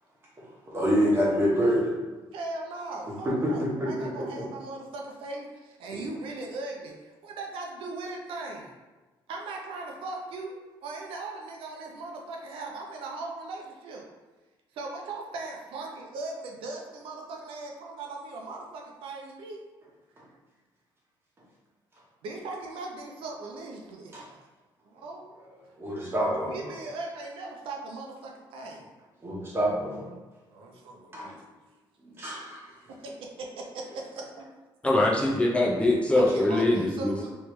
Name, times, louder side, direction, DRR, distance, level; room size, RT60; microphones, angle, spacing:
voice 1, 0.7-1.9 3.2-4.3 24.1-24.2 25.8-26.7 29.2-30.1 31.1-31.3 32.2-32.6, equal, 25° right, -5 dB, 1.2 m, -26 dB
voice 2, 2.3-8.7 9.3-14.1 14.7-19.6 22.2-24.5 24.9-25.3 26.5-28.9 30.5-31.4 33.0-34.5 36.1-37.3, right 3 dB, 85° right, 0 dB, 0.6 m, -39 dB
voice 3, 34.8-37.1, left 1 dB, 15° left, -3 dB, 0.5 m, -23 dB
3.1 x 3.0 x 3.2 m, 1.2 s
cardioid pair, 130°, 9 cm